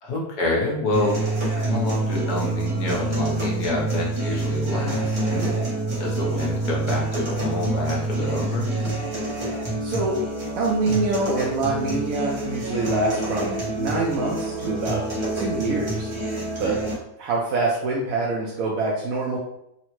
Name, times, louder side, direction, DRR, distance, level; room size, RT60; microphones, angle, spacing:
voice 1, 0.0-1.2 1.6-5.5 6.0-8.7, left 1 dB, 70° left, -2 dB, 1.4 m, -27 dB
sound 1, 0.9-16.9, right 2 dB, 30° right, 0.5 m, -27 dB
voice 2, 9.8-10.2 10.6-16.1 16.6-16.8 17.2-19.4, right 3 dB, 70° right, -3 dB, 0.9 m, -25 dB
3.7 x 2.1 x 3.0 m, 0.80 s
omnidirectional pair, 1.8 m